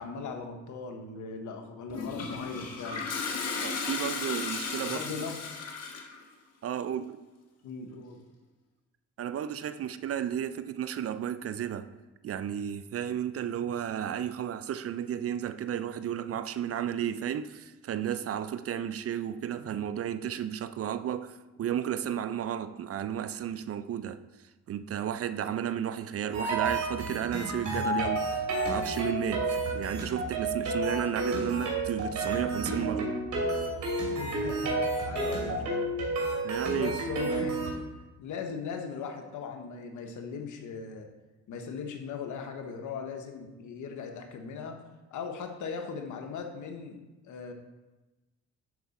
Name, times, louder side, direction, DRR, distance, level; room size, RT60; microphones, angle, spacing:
voice 1, 0.0-3.1 4.8-5.5 7.6-8.2 34.1-35.9 36.7-37.8 38.2-41.1 41.5-44.8 45.1-47.5, left 5 dB, 80° left, 5 dB, 1.2 m, -39 dB
Toilet flush, 1.9-6.2, left 5 dB, 55° left, 1.4 m, -35 dB
voice 2, 3.6-5.0 6.6-7.2 9.2-11.9 12.2-24.2 24.7-33.1 36.4-37.0, right 9 dB, 50° right, 13 dB, 0.5 m, -33 dB
sound 1, 26.3-37.7, right 2 dB, 70° right, 2.8 m, -31 dB
11.0 x 4.7 x 4.2 m, 1.1 s
cardioid pair, 90°, 30 cm